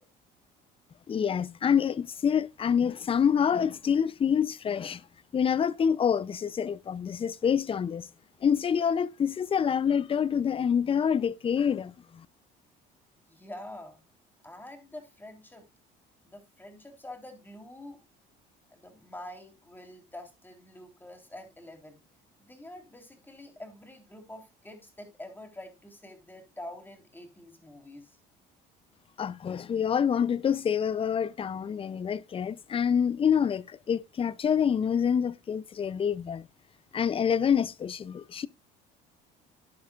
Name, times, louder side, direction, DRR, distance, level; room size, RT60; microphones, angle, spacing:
voice 1, 1.1-5.0 5.3-8.1 8.4-11.9 29.2-36.4 36.9-38.5, left 7 dB, 30° left, 0.5 m, -26 dB
voice 2, 13.2-14.0 14.4-15.7 16.2-18.0 18.7-22.0 22.4-28.2, left 1 dB, 10° left, 3.7 m, -46 dB
11.5 x 10.5 x 2.5 m
supercardioid pair, 90°, 20 cm